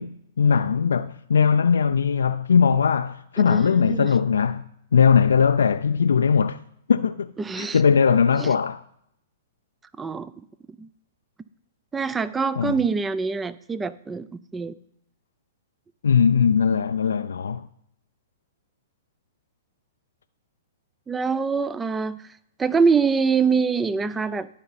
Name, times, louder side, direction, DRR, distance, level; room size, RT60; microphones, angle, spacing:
voice 1, 0.0-4.6 4.9-6.6 6.9-7.3 7.6-8.8 12.6-12.7 16.0-17.6, left 6 dB, 85° left, 0.3 m, -20 dB
voice 2, 3.5-4.1 7.4-7.8 8.4-8.5 10.0-10.3 10.8-10.9 11.9-14.7 21.1-22.2 22.6-24.5, right 5 dB, 15° right, 0.4 m, -24 dB
11.0 x 4.9 x 4.1 m
hypercardioid pair, 130°, 0 cm